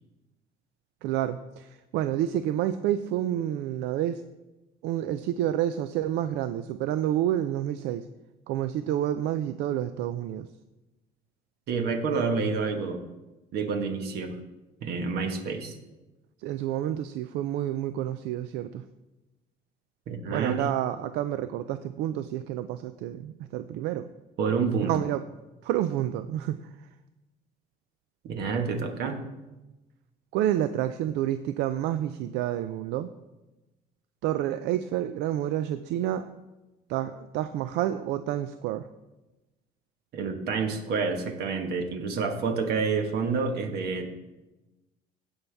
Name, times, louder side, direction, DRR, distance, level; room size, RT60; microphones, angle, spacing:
voice 1, 1.0-4.2 4.8-8.0 8.5-10.5 16.4-18.8 20.3-24.1 24.9-25.2 25.6-26.6 30.3-33.1 34.2-36.3 36.9-38.9, right 12 dB, 90° right, 11 dB, 0.4 m, -29 dB
voice 2, 11.7-13.0 13.5-14.3 14.8-15.8 20.1-20.6 24.4-25.0 28.2-29.2 40.1-44.1, right 5 dB, 70° right, 5 dB, 1.3 m, -28 dB
16.0 x 5.5 x 3.4 m, 1.0 s
cardioid pair, 110°, 17 cm